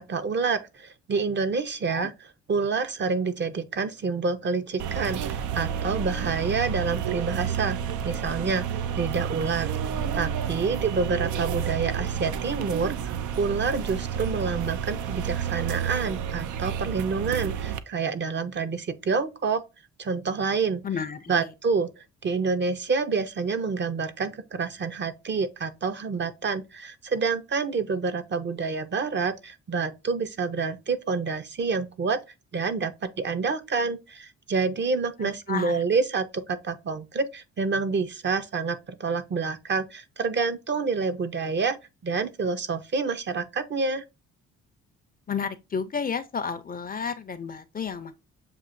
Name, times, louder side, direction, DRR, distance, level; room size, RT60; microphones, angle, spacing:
voice 1, 0.0-2.1 2.5-7.8 8.0-9.7 10.1-19.6 20.0-20.8 21.3-32.2 32.5-41.8 42.0-44.0, right 4 dB, 35° right, 0.6 m, -28 dB
sound 1, 4.8-17.8, right 8 dB, 75° right, 0.5 m, -30 dB
voice 2, 20.8-21.5 35.2-35.8 45.3-48.2, left 6 dB, 30° left, 0.5 m, -32 dB
7.3 x 2.5 x 2.5 m
cardioid pair, 90°, 30 cm